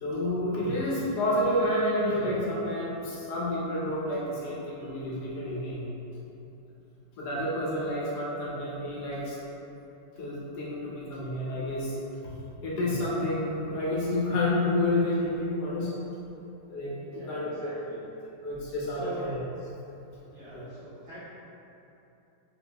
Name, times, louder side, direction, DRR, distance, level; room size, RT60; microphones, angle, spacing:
voice 1, 0.0-5.9 7.2-9.4 10.2-12.0 12.6-15.9 16.7-17.5 18.4-19.4 20.5-20.6, left 1 dB, 70° left, -6 dB, 1.2 m, -29 dB
voice 2, 17.1-18.0 18.9-19.4 20.3-21.2, equal, 80° right, -10 dB, 0.6 m, -44 dB
4.5 x 2.6 x 2.2 m, 3.0 s
omnidirectional pair, 1.9 m